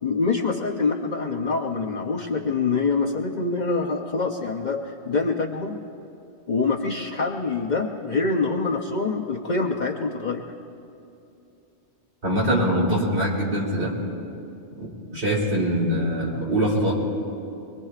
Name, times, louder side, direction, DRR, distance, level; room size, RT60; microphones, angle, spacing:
voice 1, 0.0-5.8 6.5-10.4, left 4 dB, 45° left, 2 dB, 0.7 m, -25 dB
voice 2, 12.2-13.9 14.8-16.9, equal, 65° right, -5 dB, 3.8 m, -23 dB
23.5 x 22.5 x 2.5 m, 2.7 s
omnidirectional pair, 1.2 m